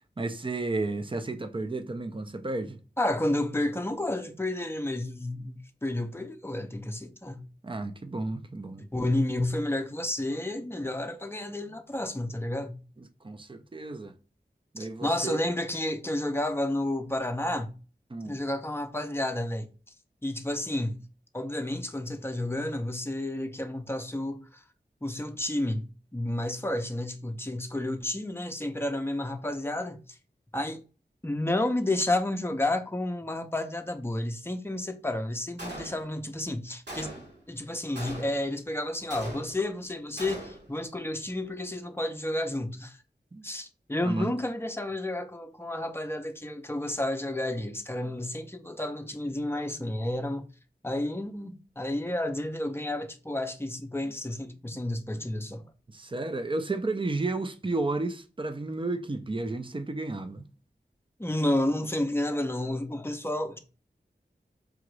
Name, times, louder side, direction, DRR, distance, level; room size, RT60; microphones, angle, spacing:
voice 1, 0.2-2.8 7.6-8.9 13.0-14.1 14.7-15.4 18.1-18.4 43.3-43.5 44.0-44.3 55.9-60.5, right 2 dB, 30° right, 0.5 m, -32 dB
voice 2, 3.0-7.4 8.9-12.8 14.8-17.7 18.3-19.7 20.2-21.0 21.3-24.6 25.0-25.8 26.1-30.2 30.5-30.8 31.2-43.0 43.4-50.5 50.8-55.7 61.2-63.6, left 1 dB, 15° left, 0.6 m, -31 dB
Gunshot gunfire, 35.6-36.3 36.9-37.4 37.9-38.6 39.1-39.8 40.2-40.7, right 1 dB, 75° right, 1.8 m, -41 dB
4.8 x 2.5 x 3.1 m
wide cardioid pair, 50°, 18 cm